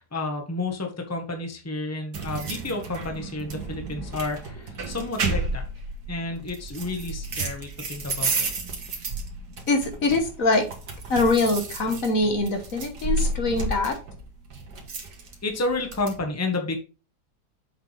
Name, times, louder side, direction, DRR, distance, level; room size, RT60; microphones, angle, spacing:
voice 1, 0.0-5.7 6.1-8.5 15.4-16.8, left 2 dB, 10° left, 3 dB, 1.2 m, -31 dB
sound 1, 2.1-16.2, right 3 dB, 80° right, 2.1 m, -32 dB
voice 2, 9.7-10.7 11.1-14.0, left 3 dB, 60° left, 4 dB, 1.7 m, -23 dB
7.1 x 5.8 x 3.4 m, 0.33 s
omnidirectional pair, 1.7 m